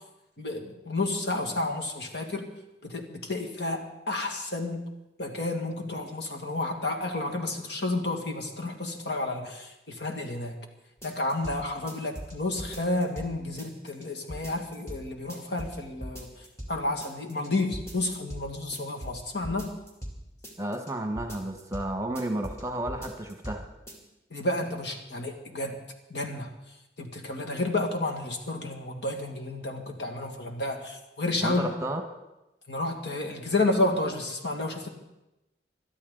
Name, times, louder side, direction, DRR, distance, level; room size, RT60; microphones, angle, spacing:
voice 1, 0.4-2.5 2.8-4.9 5.2-10.6 11.0-19.7 24.3-25.8 26.1-26.5 27.0-31.7 32.7-34.9, left 2 dB, 75° left, 2 dB, 2.1 m, -31 dB
sound 1, 11.0-11.6 11.9-13.3 13.6-14.0 14.3-15.0 15.3-16.7 17.0-17.5 17.7-18.4 18.7-20.2 20.4-20.9 21.2-21.9 22.2-22.6 22.9-23.6 23.9-24.0, equal, 15° left, 2.8 m, -40 dB
voice 2, 20.6-23.7 31.4-32.0, right 1 dB, 15° right, 6 dB, 1.3 m, -32 dB
21.5 x 12.5 x 3.9 m, 0.95 s
head